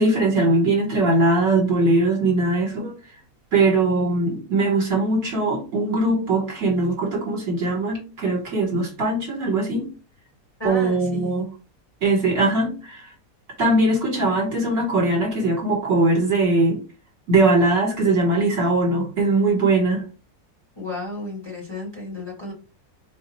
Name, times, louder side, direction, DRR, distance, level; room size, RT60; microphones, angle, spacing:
voice 1, 0.0-3.0 3.5-9.9 10.6-11.5 12.0-13.1 13.6-16.8 17.3-20.0, right 2 dB, 55° right, 0 dB, 1.5 m, -21 dB
voice 2, 10.6-11.4 20.7-22.5, left 2 dB, 15° left, -4 dB, 1.3 m, -33 dB
4.1 x 2.3 x 2.9 m, 0.32 s
omnidirectional pair, 1.7 m